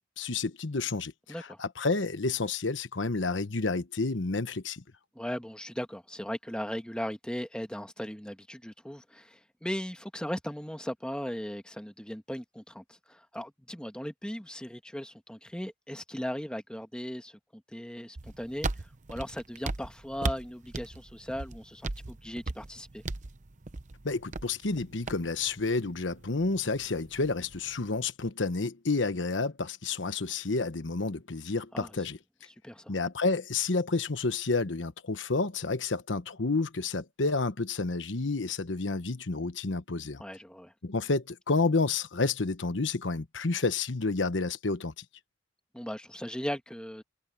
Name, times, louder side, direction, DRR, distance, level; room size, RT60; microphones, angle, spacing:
voice 1, 0.2-1.1 1.4-4.8 24.0-32.2 32.9-40.2 40.8-45.0, left 3 dB, 80° left, 1.1 m, -30 dB
voice 2, 1.3-1.6 5.1-23.0 31.7-32.0 32.6-32.9 40.2-40.7 45.7-47.0, equal, 5° left, 1.5 m, -38 dB
sound 1, 18.2-28.0, right 3 dB, 40° right, 0.8 m, -39 dB
head